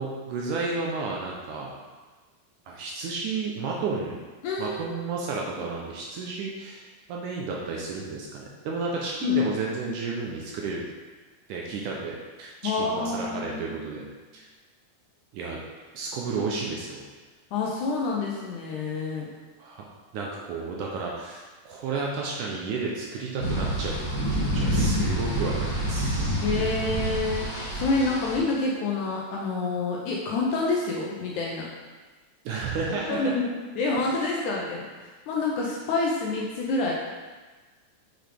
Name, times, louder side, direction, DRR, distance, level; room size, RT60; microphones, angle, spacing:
voice 1, 0.0-1.7 2.7-4.1 4.6-10.8 11.5-14.0 14.3-14.5 15.3-15.6 15.9-17.0 19.6-19.8 20.1-26.5 32.5-33.4, right 4 dB, 75° right, -2 dB, 2.0 m, -32 dB
voice 2, 4.4-5.0 9.2-9.4 9.8-10.0 12.6-14.0 17.5-19.3 26.4-27.4 27.7-31.7 33.1-33.5 33.8-34.9 35.3-36.9, left 3 dB, 75° left, -3 dB, 1.9 m, -27 dB
sound 1, 23.4-28.4, right 1 dB, 20° left, 0.6 m, -27 dB
6.4 x 6.2 x 3.4 m, 1.3 s
omnidirectional pair, 4.1 m